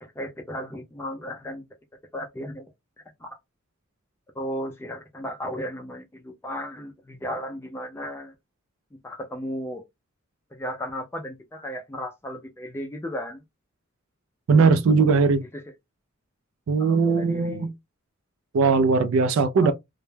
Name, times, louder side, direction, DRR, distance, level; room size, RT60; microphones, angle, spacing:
voice 1, 0.0-1.6 2.1-2.7 3.2-3.4 4.4-8.3 9.0-9.8 10.5-13.4 15.5-15.6 16.8-17.7 19.6-19.7, equal, 10° left, 0.3 m, -35 dB
voice 2, 14.5-15.4 16.7-17.7 18.5-19.7, right 4 dB, 70° right, 0.3 m, -19 dB
2.1 x 2.1 x 3.1 m
head